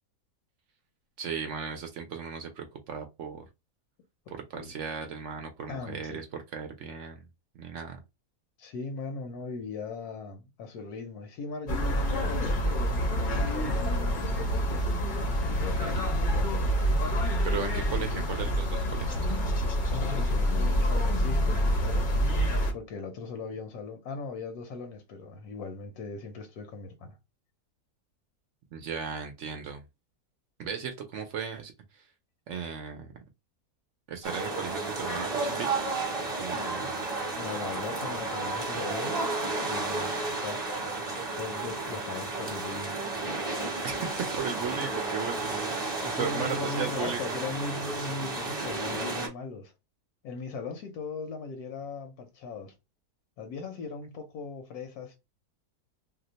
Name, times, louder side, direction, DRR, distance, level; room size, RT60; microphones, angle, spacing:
voice 1, 1.2-3.5 4.5-7.2 7.5-8.0 15.8-16.1 17.4-19.4 28.7-29.8 30.6-32.1 32.5-33.1 34.1-35.7 36.3-37.0 43.8-45.8 46.2-47.5, right 6 dB, 70° right, 0.7 m, -36 dB
voice 2, 4.3-4.7 5.7-6.2 8.6-14.9 15.4-16.9 19.9-22.1 22.7-27.2 36.5-36.7 37.4-39.2 39.7-40.1 40.4-40.6 41.4-43.0 46.0-49.7 50.2-52.7 53.4-55.2, left 4 dB, 80° left, 1.1 m, -39 dB
sound 1, 11.7-22.7, equal, 50° left, 0.6 m, -27 dB
sound 2, 34.2-49.3, right 3 dB, 25° right, 0.9 m, -32 dB
2.8 x 2.0 x 3.9 m
omnidirectional pair, 1.6 m